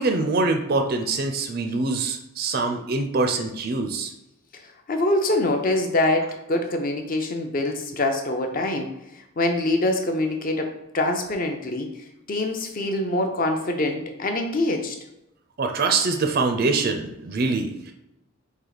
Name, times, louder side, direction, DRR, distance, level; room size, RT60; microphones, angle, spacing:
voice 1, 0.0-4.1 15.6-17.9, right 3 dB, 45° right, 5 dB, 0.4 m, -24 dB
voice 2, 4.9-8.9 9.4-11.9 12.3-15.0, left 2 dB, 40° left, 5 dB, 0.6 m, -24 dB
4.5 x 2.7 x 4.0 m, 0.89 s
head